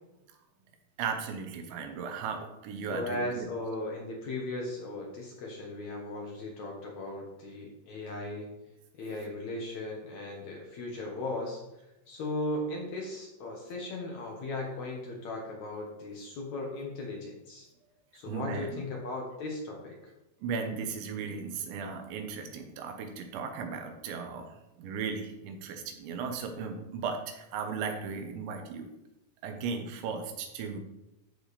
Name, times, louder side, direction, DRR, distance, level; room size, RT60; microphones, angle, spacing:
voice 1, 1.0-3.5 18.3-18.8 20.4-24.5 24.8-28.9 29.4-30.8, right 5 dB, 85° right, 4 dB, 3.4 m, -36 dB
voice 2, 2.9-8.5 8.9-11.6 12.1-17.7 18.1-19.9, left 2 dB, 70° left, -1 dB, 1.7 m, -37 dB
13.5 x 5.0 x 4.1 m, 0.92 s
omnidirectional pair, 5.1 m